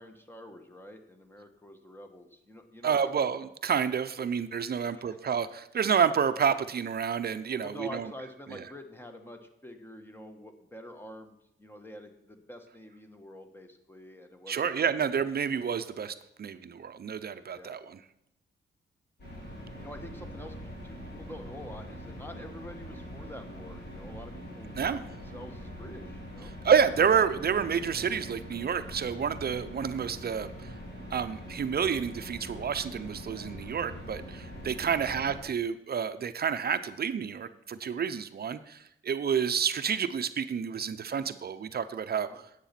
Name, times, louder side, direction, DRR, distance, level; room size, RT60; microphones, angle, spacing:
voice 1, 0.0-3.1 4.8-5.2 7.6-14.7 14.9-15.1 17.5-17.8 19.8-20.5 20.8-26.5 34.9-35.1 42.2-42.4, left 1 dB, 10° left, 6 dB, 1.3 m, -47 dB
voice 2, 2.8-8.1 8.5-8.6 14.5-18.0 24.8-25.0 26.6-30.7 31.1-42.3, right 7 dB, 50° right, 11 dB, 0.6 m, -29 dB
sound 1, 19.2-35.4, equal, 50° left, 4.4 m, -43 dB
10.0 x 8.3 x 5.8 m, 0.81 s
wide cardioid pair, 115°, 21 cm